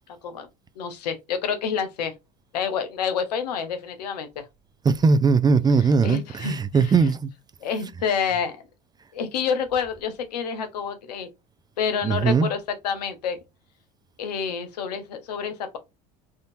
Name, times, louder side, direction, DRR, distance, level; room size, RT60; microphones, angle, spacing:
voice 1, 0.8-2.1 2.5-4.4 6.0-7.0 7.6-8.6 9.1-11.3 11.8-13.4 14.2-15.8, left 6 dB, 90° left, 0.8 m, -28 dB
voice 2, 4.8-7.3 12.0-12.5, right 5 dB, 20° right, 0.4 m, -20 dB
3.5 x 2.7 x 2.6 m
hypercardioid pair, 80°, 20 cm